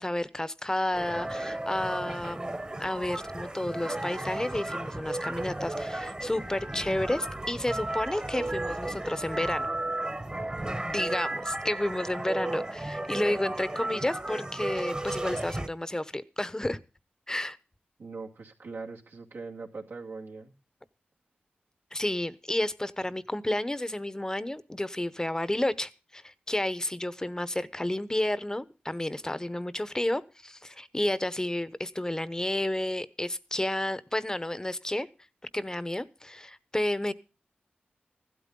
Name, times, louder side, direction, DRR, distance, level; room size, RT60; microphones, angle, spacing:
voice 1, 0.0-9.7 10.6-16.8 17.3-17.6 21.9-35.1 35.5-37.1, left 1 dB, 15° left, 1.0 m, -31 dB
sound 1, 0.9-15.7, right 2 dB, 25° right, 1.3 m, -34 dB
voice 2, 18.0-20.5, right 4 dB, 80° right, 2.2 m, -41 dB
15.5 x 12.5 x 3.8 m
cardioid pair, 55°, 4 cm